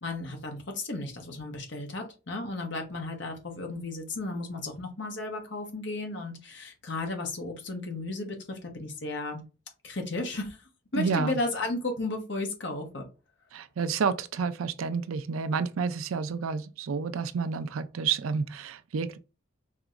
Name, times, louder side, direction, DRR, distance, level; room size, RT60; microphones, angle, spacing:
voice 1, 0.0-9.4 9.8-10.6 10.9-13.1, left 2 dB, 60° left, 1.1 m, -34 dB
voice 2, 11.0-11.4 13.5-19.2, right 5 dB, 90° right, 0.4 m, -30 dB
4.7 x 2.9 x 2.4 m
head